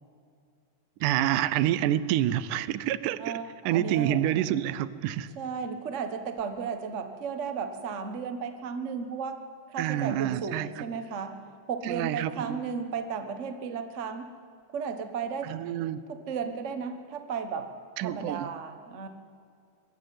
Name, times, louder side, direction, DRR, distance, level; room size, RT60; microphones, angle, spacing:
voice 1, 1.0-3.4 3.7-5.3 9.8-10.8 11.8-12.6 15.4-16.0 18.0-18.5, right 12 dB, 85° right, 17 dB, 2.2 m, -28 dB
voice 2, 3.2-4.2 5.4-9.4 9.7-11.3 11.7-14.2 14.7-15.6 16.1-17.7 18.0-19.1, right 6 dB, 65° right, 8 dB, 0.7 m, -34 dB
23.0 x 13.5 x 9.3 m, 2.3 s
omnidirectional pair, 3.6 m